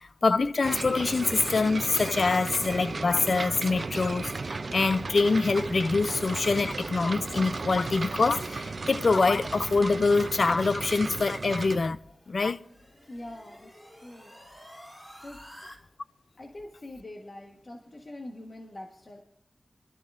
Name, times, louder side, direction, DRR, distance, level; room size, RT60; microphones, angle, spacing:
voice 1, 0.2-12.0 12.3-12.6, left 3 dB, 70° left, 0.4 m, -25 dB
sound 1, 0.6-11.8, right 3 dB, 65° right, 0.5 m, -35 dB
sound 2, 12.0-15.8, equal, 20° left, 4.1 m, -50 dB
voice 2, 13.1-14.4 15.2-15.4 16.4-19.2, left 1 dB, 50° left, 1.3 m, -44 dB
22.5 x 13.0 x 2.6 m
wide cardioid pair, 60°, 0 cm